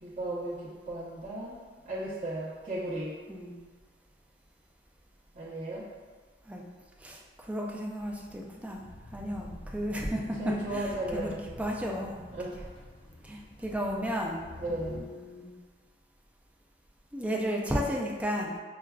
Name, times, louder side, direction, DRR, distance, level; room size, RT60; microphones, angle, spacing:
voice 1, 0.0-1.6 1.8-3.1 5.3-5.9 10.3-11.5 12.3-12.6 14.5-15.1, right 1 dB, 40° right, -12 dB, 0.8 m, -35 dB
voice 2, 3.3-3.6 6.5-6.6 7.0-8.8 9.1-10.8 11.1-12.2 13.2-15.5 17.1-18.5, equal, 10° right, -2 dB, 0.4 m, -34 dB
sound 1, 8.0-15.0, left 1 dB, 35° left, 0.6 m, -48 dB
5.9 x 2.2 x 2.3 m, 1.5 s
head